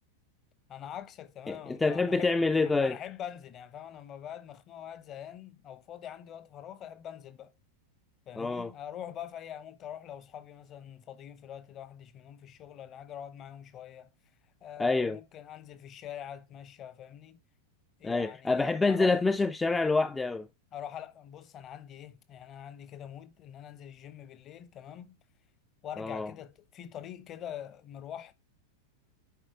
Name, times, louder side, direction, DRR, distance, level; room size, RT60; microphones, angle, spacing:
voice 1, 0.7-2.3 2.6-7.5 8.3-14.1 14.6-17.4 18.0-19.1 20.7-25.2 25.8-28.3, left 10 dB, 30° left, 0.9 m, -44 dB
voice 2, 1.5-3.0 8.4-8.7 14.8-15.2 18.0-20.5 26.0-26.3, left 3 dB, 10° left, 0.4 m, -27 dB
10.5 x 4.6 x 4.6 m
figure-of-eight pair, 90°, 0 cm